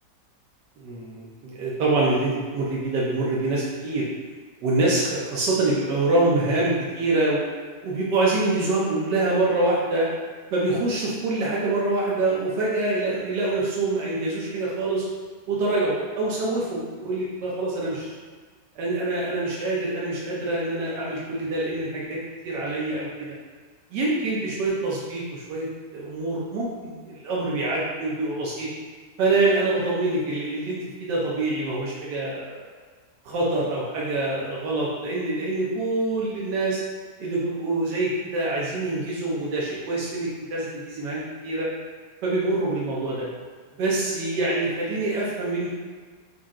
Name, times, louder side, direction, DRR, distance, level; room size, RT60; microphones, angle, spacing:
voice 1, 0.8-4.0 4.6-7.4 7.8-10.1 10.5-15.1 15.5-18.1 18.7-22.2 22.4-23.4 23.9-25.7 25.9-28.7 29.2-32.7 33.2-36.8 37.2-41.7 42.2-43.3 43.8-45.7, right 2 dB, 85° right, -5 dB, 1.5 m, -25 dB
5.5 x 2.5 x 3.6 m, 1.5 s
omnidirectional pair, 1.8 m